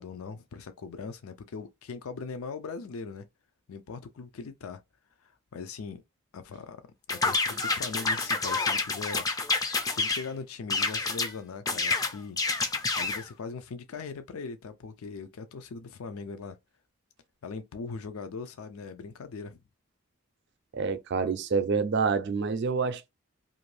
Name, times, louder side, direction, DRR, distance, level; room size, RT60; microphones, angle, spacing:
voice 1, 0.0-3.3 3.7-4.8 5.2-6.0 6.3-6.8 7.1-9.2 9.9-12.4 13.0-16.6 17.4-19.6, left 4 dB, 80° left, 0.4 m, -40 dB
sound 1, 7.1-10.3 10.7-11.3 11.7-13.2, left 3 dB, 15° left, 0.3 m, -28 dB
voice 2, 20.7-23.1, right 5 dB, 55° right, 0.4 m, -27 dB
2.5 x 2.5 x 3.1 m
head